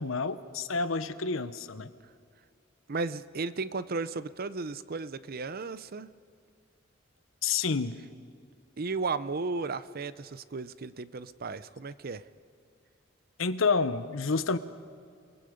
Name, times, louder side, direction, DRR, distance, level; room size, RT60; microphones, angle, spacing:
voice 1, 0.0-1.9 7.4-7.9 13.4-14.6, left 4 dB, 85° left, 12 dB, 0.9 m, -29 dB
voice 2, 2.9-6.1 8.8-12.2, right 4 dB, 50° right, 15 dB, 0.6 m, -34 dB
30.0 x 19.5 x 5.2 m, 2.3 s
head